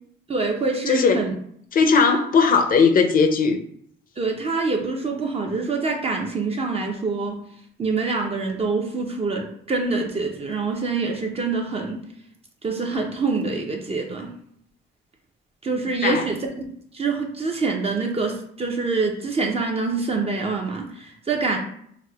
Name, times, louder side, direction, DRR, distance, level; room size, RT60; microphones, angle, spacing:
voice 1, 0.3-1.3 4.2-7.4 7.8-12.0 12.6-14.3 15.6-16.7 16.9-21.6, right 3 dB, 30° right, 0.5 m, -25 dB
voice 2, 0.9-1.2 1.7-3.6 16.0-16.2, left 5 dB, 45° left, 0.5 m, -18 dB
4.7 x 2.1 x 2.3 m
cardioid pair, 90°, 20 cm